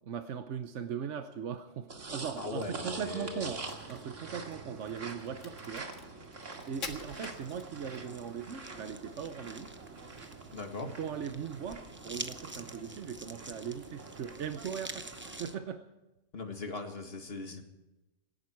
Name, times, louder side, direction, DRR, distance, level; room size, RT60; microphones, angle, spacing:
voice 1, 0.0-5.9 6.7-9.7 10.8-15.8, right 7 dB, 70° right, 8 dB, 1.2 m, -39 dB
sound 1, 1.9-15.6, right 3 dB, 90° right, 2.3 m, -45 dB
voice 2, 2.4-3.5 10.5-10.9 16.3-17.6, left 3 dB, 55° left, 4 dB, 2.2 m, -39 dB
Crack, 3.5-8.1, left 4 dB, 80° left, 2.0 m, -47 dB
sound 2, 6.7-15.5, right 2 dB, 10° right, 0.7 m, -48 dB
26.0 x 11.0 x 4.6 m, 1.0 s
omnidirectional pair, 1.3 m